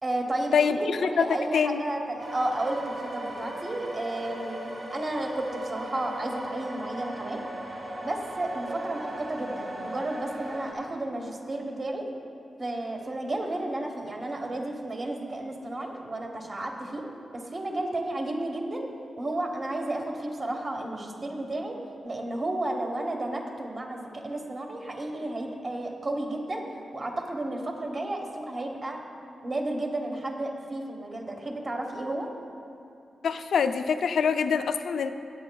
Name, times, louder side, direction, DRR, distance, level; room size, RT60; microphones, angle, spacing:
voice 1, 0.0-0.5 0.8-7.4 8.0-12.1 12.6-17.0 17.3-18.9 19.2-21.8 22.0-26.6 26.9-29.0 29.4-32.4, right 1 dB, 30° right, 1 dB, 1.1 m, -32 dB
voice 2, 0.5-1.3 1.5-1.8 33.2-35.1, left 6 dB, 80° left, 9 dB, 0.4 m, -25 dB
sound 1, 2.2-10.7, right 1 dB, 50° right, 1.5 m, -38 dB
19.0 x 8.4 x 2.3 m, 2.6 s
wide cardioid pair, 165°, 0 cm